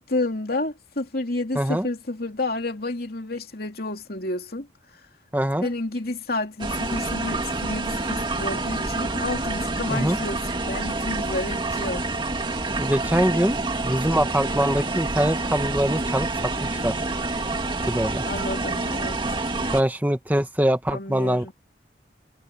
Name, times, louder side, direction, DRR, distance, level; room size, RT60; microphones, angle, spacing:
voice 1, 0.0-4.7 5.6-12.1 18.3-19.1 20.9-21.5, left 2 dB, 55° left, 3.0 m, -30 dB
voice 2, 1.5-1.9 5.3-5.7 9.9-10.2 12.8-13.6 13.8-17.0 17.9-18.2 19.7-21.5, right 1 dB, 10° right, 1.3 m, -23 dB
sound 1, 6.6-19.8, right 2 dB, 25° right, 2.3 m, -27 dB
head